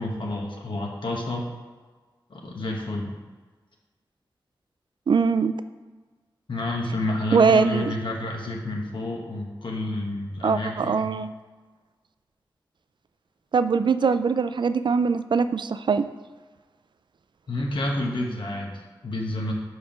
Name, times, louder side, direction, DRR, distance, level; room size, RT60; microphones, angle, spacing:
voice 1, 0.0-1.5 2.3-3.1 6.5-11.1 17.5-19.5, left 1 dB, 70° left, -1 dB, 1.5 m, -29 dB
voice 2, 5.1-5.6 7.3-7.9 10.4-11.3 13.5-16.1, right 5 dB, 65° right, 12 dB, 0.4 m, -22 dB
5.2 x 4.9 x 6.1 m, 1.4 s
wide cardioid pair, 65°, 9 cm